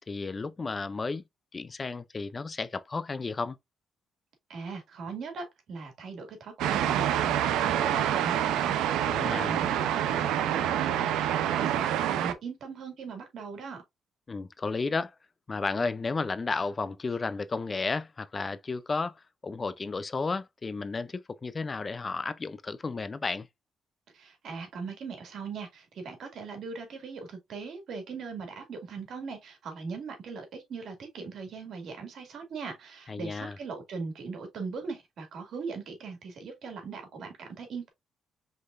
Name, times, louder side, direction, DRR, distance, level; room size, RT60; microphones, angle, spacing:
voice 1, 0.1-1.2 1.5-3.6 9.1-9.6 14.3-15.1 15.5-23.5 33.1-33.6, left 4 dB, 30° left, 0.4 m, -33 dB
voice 2, 4.5-13.8 24.1-37.9, right 4 dB, 65° right, 2.0 m, -40 dB
sound 1, 6.6-12.3, right 10 dB, 90° right, 0.6 m, -27 dB
5.2 x 3.8 x 2.4 m
cardioid pair, 90°, 0 cm